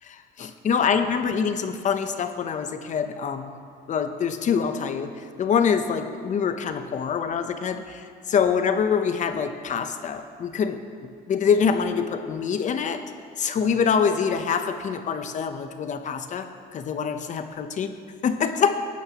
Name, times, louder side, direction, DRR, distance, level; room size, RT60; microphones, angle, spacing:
voice 1, 0.0-3.5 3.9-10.8 11.3-13.0 13.4-17.9 18.2-18.8, left 6 dB, 45° left, 8 dB, 0.8 m, -25 dB
17.5 x 10.5 x 3.0 m, 2.2 s
cardioid pair, 110°, 17 cm